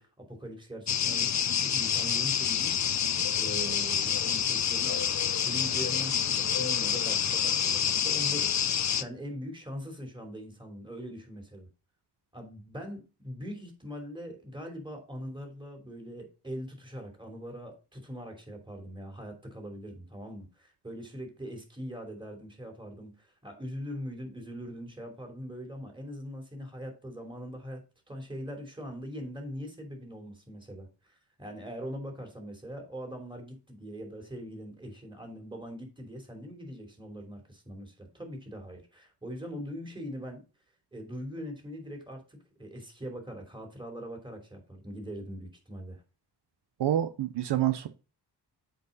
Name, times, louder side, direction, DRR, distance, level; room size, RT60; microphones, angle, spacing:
voice 1, 0.0-2.7 3.4-11.7 12.3-27.8 28.1-40.4 40.9-46.0, equal, 10° right, 3.1 m, -42 dB
sound 1, 0.9-9.0, left 8 dB, 45° left, 0.6 m, -28 dB
voice 2, 46.8-47.9, right 12 dB, 75° right, 0.7 m, -27 dB
8.0 x 4.7 x 4.1 m
cardioid pair, 80°, 41 cm